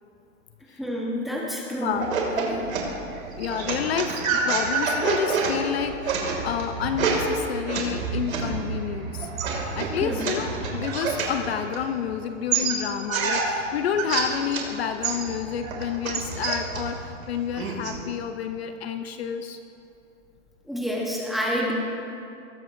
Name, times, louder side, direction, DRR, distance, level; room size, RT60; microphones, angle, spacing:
voice 1, 0.8-2.1 2.4-2.7 10.0-10.2 20.7-21.7, equal, ahead, -4 dB, 1.0 m, -28 dB
sound 1, 1.9-12.1 12.5-14.7 15.0-18.0, right 5 dB, 85° right, 2.5 m, -28 dB
voice 2, 3.4-9.3 9.8-19.6, left 8 dB, 50° left, 8 dB, 0.6 m, -29 dB
19.5 x 8.5 x 2.6 m, 2.7 s
hypercardioid pair, 160°, 40 cm